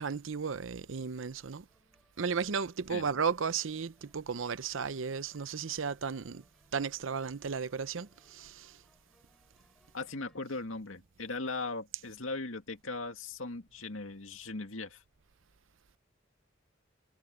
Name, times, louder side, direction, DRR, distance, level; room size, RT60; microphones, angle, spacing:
voice 1, 0.0-1.7 2.2-6.4 6.7-8.8, right 6 dB, 75° right, 0.7 m, -34 dB
sound 1, 1.7-10.4, equal, ahead, 6.6 m, -69 dB
voice 2, 9.9-15.0, left 3 dB, 90° left, 2.2 m, -39 dB
head